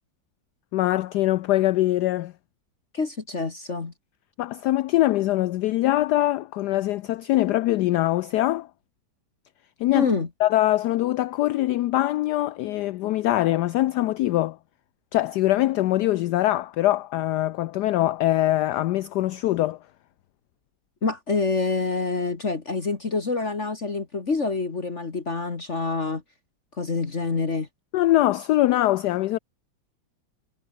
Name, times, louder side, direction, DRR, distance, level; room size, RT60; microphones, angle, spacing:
voice 1, 0.7-2.3 4.4-8.7 9.8-10.1 10.4-14.6 15.1-19.8 27.9-29.4, left 15 dB, 75° left, 1.0 m, -23 dB
voice 2, 2.9-3.9 9.9-10.3 21.0-26.2 26.8-27.7, left 4 dB, 35° left, 2.1 m, -26 dB
omnidirectional pair, 2.1 m